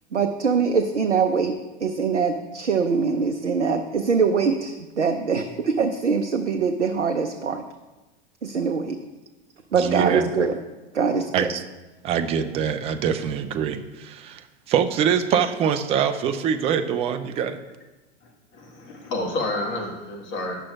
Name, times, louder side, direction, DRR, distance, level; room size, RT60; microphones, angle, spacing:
voice 1, 0.1-1.6 1.8-7.6 8.4-9.0 9.7-10.6 10.9-11.5, right 5 dB, 90° right, 5 dB, 0.5 m, -23 dB
voice 2, 9.7-10.3 11.3-11.6 12.0-17.6, right 8 dB, 20° right, 8 dB, 0.3 m, -24 dB
voice 3, 18.2-20.6, left 2 dB, 35° left, 1 dB, 1.4 m, -30 dB
9.9 x 6.1 x 2.3 m, 1.1 s
figure-of-eight pair, 90°, 34 cm